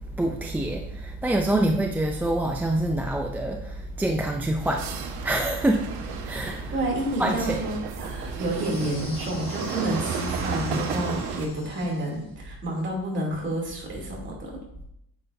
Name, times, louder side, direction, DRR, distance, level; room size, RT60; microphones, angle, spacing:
voice 1, 0.1-5.9 6.2-6.7 7.2-7.6, right 1 dB, 5° right, 2 dB, 0.3 m, -26 dB
sound 1, 4.6-11.5, right 5 dB, 85° right, 1.3 m, -33 dB
voice 2, 6.7-14.6, right 1 dB, 30° right, -2 dB, 2.7 m, -29 dB
sound 2, 8.3-12.3, left 2 dB, 25° left, 3.1 m, -44 dB
9.2 x 7.8 x 2.6 m, 0.77 s
cardioid pair, 160°, 38 cm